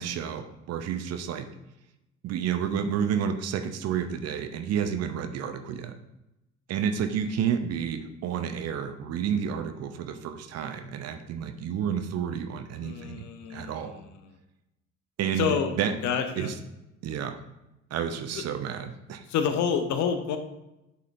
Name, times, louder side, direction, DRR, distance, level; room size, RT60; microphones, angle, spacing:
voice 1, 0.0-1.5 2.2-5.9 6.7-13.2 13.5-14.0 15.2-15.9 16.4-16.5 17.0-17.4 17.9-19.2, right 8 dB, 40° right, 7 dB, 0.7 m, -30 dB
voice 2, 12.8-14.2 15.4-15.7 16.0-16.5 19.3-20.4, left 7 dB, 45° left, 7 dB, 0.8 m, -28 dB
10.5 x 4.2 x 2.5 m, 0.92 s
figure-of-eight pair, 55°, 39 cm